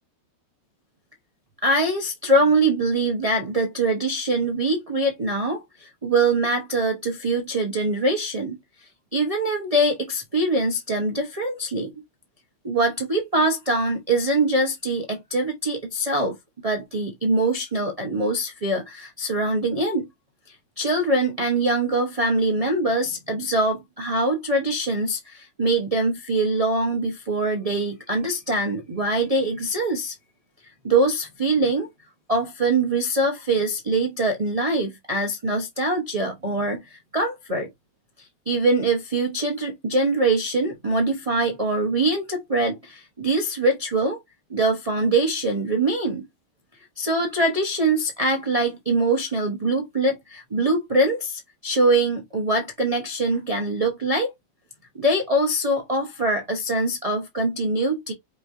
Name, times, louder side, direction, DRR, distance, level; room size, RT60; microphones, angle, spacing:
voice 1, 1.6-8.6 9.1-11.9 12.6-16.3 16.6-20.1 20.5-30.1 30.8-31.9 32.3-37.7 38.2-44.2 44.5-46.2 47.0-54.3 54.9-58.1, right 2 dB, 35° right, 0.5 m, -23 dB
5.3 x 3.1 x 2.5 m
omnidirectional pair, 1.9 m